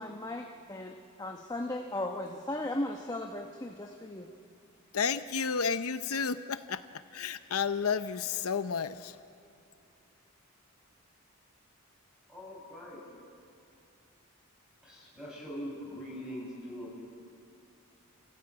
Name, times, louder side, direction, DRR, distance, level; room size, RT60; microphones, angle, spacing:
voice 1, 0.0-4.3, left 1 dB, 20° left, 2 dB, 1.0 m, -37 dB
voice 2, 4.9-6.8 7.1-9.1, left 6 dB, 90° left, 11 dB, 0.7 m, -31 dB
voice 3, 12.3-13.0 14.8-17.0, equal, 5° right, -4 dB, 7.5 m, -42 dB
27.0 x 16.5 x 8.8 m, 2.6 s
head